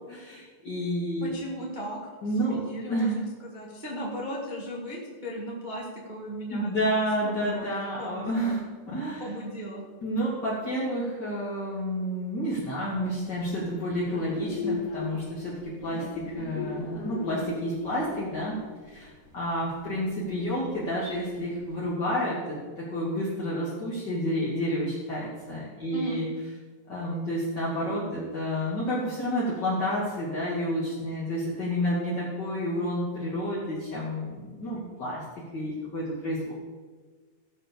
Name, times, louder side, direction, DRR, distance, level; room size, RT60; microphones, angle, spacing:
voice 1, 0.1-1.3 2.2-2.6 2.9-3.2 6.5-9.3 10.0-18.6 18.9-26.3 26.9-36.5, equal, 35° left, -8 dB, 1.9 m, -30 dB
voice 2, 1.2-2.1 2.4-7.7 8.0-8.5 9.2-9.8 25.9-26.3, equal, 65° right, -4 dB, 0.4 m, -36 dB
sound 1, 14.0-21.8, left 4 dB, 50° left, 3.1 m, -38 dB
16.0 x 5.6 x 7.0 m, 1.4 s
omnidirectional pair, 5.4 m